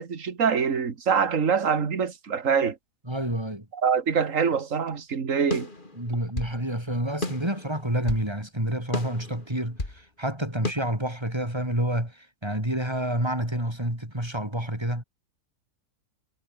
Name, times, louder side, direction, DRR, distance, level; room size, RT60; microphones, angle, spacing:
voice 1, 0.0-2.8 3.7-5.7, right 6 dB, 50° right, 2.2 m, -24 dB
voice 2, 3.1-3.7 6.0-15.0, right 1 dB, 15° right, 6.3 m, -28 dB
sound 1, 5.5-6.6 7.2-8.3 8.9-10.0 10.6-10.7, left 2 dB, 30° left, 3.3 m, -33 dB
omnidirectional pair, 1.8 m